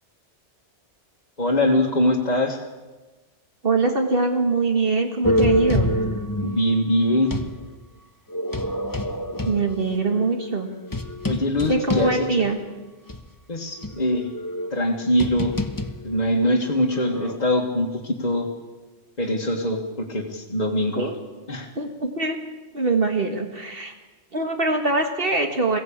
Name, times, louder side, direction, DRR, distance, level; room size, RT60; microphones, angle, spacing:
voice 1, 1.4-2.6 6.4-7.3 11.3-12.4 13.5-14.3 14.7-15.6 16.0-18.5 19.2-21.1 21.5-21.7, left 1 dB, 40° left, -2 dB, 2.1 m, -23 dB
voice 2, 3.6-6.0 9.5-10.7 11.7-12.6 21.0-21.1 21.8-22.4 22.7-23.9 24.3-25.8, right 3 dB, 55° right, 4 dB, 1.9 m, -23 dB
sound 1, 5.2-7.6 8.3-12.7 13.1-13.2 13.8-17.4, left 1 dB, 20° left, 1.1 m, -27 dB
21.5 x 16.0 x 8.8 m, 1.2 s
omnidirectional pair, 1.1 m